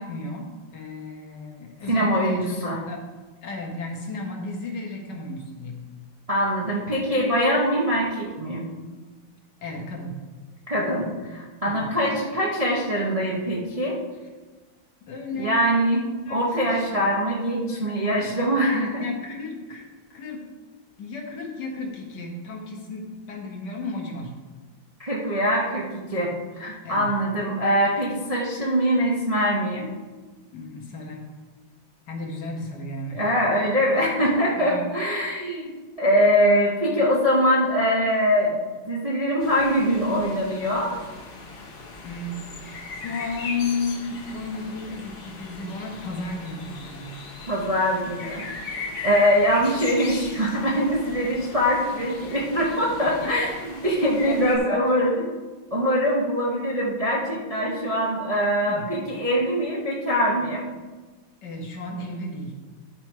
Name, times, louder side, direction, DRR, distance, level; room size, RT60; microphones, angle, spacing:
voice 1, 0.0-3.0 3.4-5.9 9.6-10.2 11.6-11.9 15.1-15.6 16.3-17.2 17.7-18.3 18.7-20.4 21.0-24.3 26.8-27.1 30.5-31.3 32.1-33.2 34.6-34.9 42.0-47.1 53.2-53.5 54.2-54.8 58.7-59.1 61.4-62.6, left 3 dB, 60° left, 0 dB, 1.8 m, -34 dB
voice 2, 1.9-2.8 6.3-8.6 10.7-14.0 15.3-19.0 25.0-29.9 33.1-35.7 36.0-41.0 47.5-48.4 49.0-55.2 55.7-60.6, equal, 30° right, -4 dB, 0.7 m, -23 dB
sound 1, 39.4-54.6, left 3 dB, 90° left, 2.1 m, -39 dB
11.0 x 4.5 x 4.6 m, 1.3 s
omnidirectional pair, 2.2 m